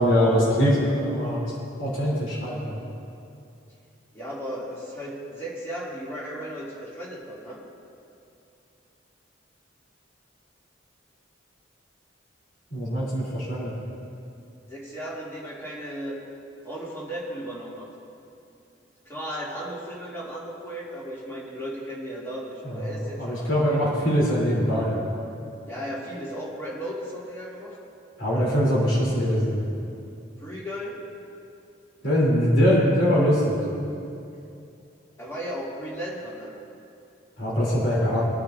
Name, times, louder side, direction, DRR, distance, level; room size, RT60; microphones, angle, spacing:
voice 1, 0.0-1.4 1.8-2.8 12.7-13.7 22.6-22.8 23.2-25.0 28.2-29.7 32.0-33.6 37.4-38.2, equal, 80° left, -7 dB, 3.3 m, -22 dB
voice 2, 4.1-7.6 14.7-16.2 16.6-17.9 19.1-23.8 25.7-27.8 30.4-31.0 35.2-36.5, equal, 15° left, -6 dB, 2.5 m, -35 dB
22.5 x 9.7 x 2.6 m, 2.6 s
head